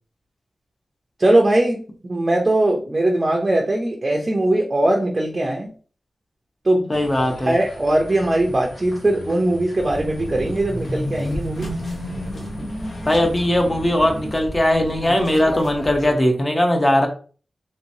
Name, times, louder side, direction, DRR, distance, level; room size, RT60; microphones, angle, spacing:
voice 1, 1.2-1.8 2.1-5.7 6.6-6.9 7.5-11.7, right 1 dB, 30° right, 1 dB, 0.5 m, -20 dB
sound 1, 6.9-14.4, equal, 80° left, 1.2 m, -33 dB
voice 2, 6.9-7.5 12.6-12.7 13.1-17.1, left 1 dB, 25° left, 3 dB, 0.7 m, -19 dB
sound 2, 9.8-16.1, equal, 60° left, 0.8 m, -35 dB
3.2 x 2.8 x 2.6 m, 0.40 s
wide cardioid pair, 125°, 0 cm